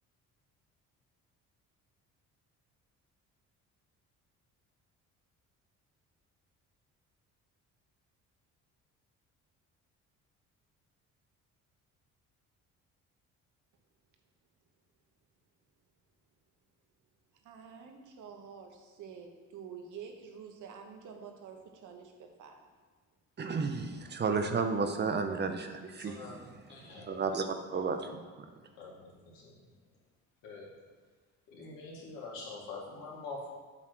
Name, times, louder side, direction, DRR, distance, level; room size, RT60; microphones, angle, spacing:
voice 1, 17.4-22.6, right 6 dB, 65° right, 3 dB, 1.1 m, -48 dB
voice 2, 23.4-26.4 27.0-28.5, right 4 dB, 35° right, 7 dB, 0.6 m, -33 dB
voice 3, 26.0-27.2 27.7-27.9 28.8-29.5 30.4-30.7 31.5-33.5, left 3 dB, 90° left, -3 dB, 1.9 m, -45 dB
7.7 x 3.1 x 5.9 m, 1.4 s
cardioid pair, 95°, 32 cm